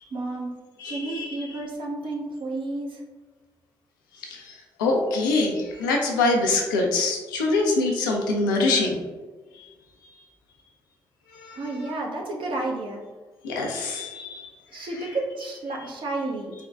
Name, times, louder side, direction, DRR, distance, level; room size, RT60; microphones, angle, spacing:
voice 1, 0.1-0.5 0.9-3.0 11.5-13.0 14.7-16.5, right 2 dB, 55° right, -1 dB, 0.8 m, -31 dB
voice 2, 0.8-1.3 4.2-9.0 9.5-9.7 10.0-10.1 11.3-11.6 13.4-14.9, left 3 dB, 85° left, 0 dB, 0.5 m, -25 dB
3.5 x 2.2 x 3.4 m, 1.3 s
hypercardioid pair, 40°, 10 cm